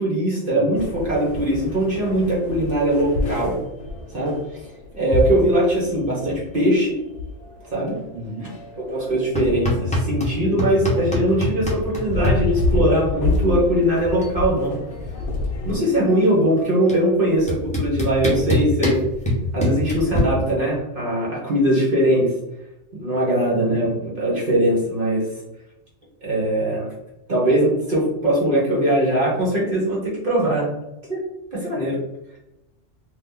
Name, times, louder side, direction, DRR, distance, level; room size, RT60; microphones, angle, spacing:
voice 1, 0.0-3.6 4.1-4.3 4.9-7.0 7.7-8.0 8.9-14.8 15.6-19.0 19.5-22.3 22.9-25.3 26.2-26.9 27.3-30.7 31.1-31.2 31.5-32.0, right 1 dB, 45° right, -5 dB, 1.1 m, -21 dB
voice 2, 0.5-1.1 5.1-5.2 8.1-8.6 23.5-24.0, right 2 dB, 65° right, -2 dB, 0.8 m, -35 dB
sound 1, 0.7-15.8, left 2 dB, 65° left, 0.8 m, -29 dB
sound 2, 9.4-10.3 10.6-12.4 13.6-13.7 14.0-14.4 14.7-16.0 16.9-17.0 17.5-20.2, left 1 dB, 5° left, 0.7 m, -23 dB
2.7 x 2.5 x 3.7 m, 0.92 s
omnidirectional pair, 1.3 m